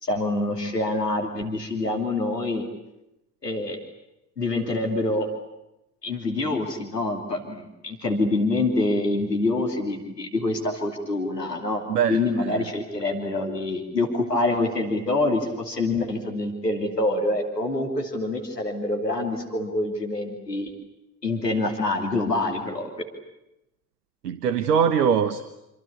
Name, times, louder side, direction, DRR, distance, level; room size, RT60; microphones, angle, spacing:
voice 1, 0.0-2.6 3.4-3.8 4.4-5.3 6.0-20.7 21.2-23.0, left 2 dB, 85° left, 3 dB, 3.0 m, -26 dB
voice 2, 11.9-12.7 24.2-25.4, right 7 dB, 75° right, 12 dB, 1.3 m, -23 dB
27.0 x 25.5 x 8.6 m, 0.90 s
figure-of-eight pair, 55°, 47 cm